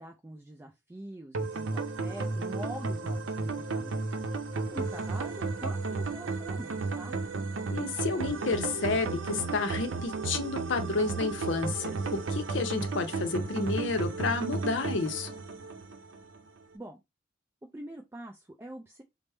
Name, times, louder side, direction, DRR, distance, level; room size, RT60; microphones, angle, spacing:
voice 1, 0.0-4.0 4.5-7.2 16.7-17.0 17.7-19.0, right 1 dB, 15° right, 0.3 m, -44 dB
sound 1, 1.3-16.4, right 3 dB, 85° right, 0.6 m, -33 dB
voice 2, 7.7-15.3, left 4 dB, 70° left, 0.6 m, -31 dB
3.4 x 2.0 x 4.2 m
head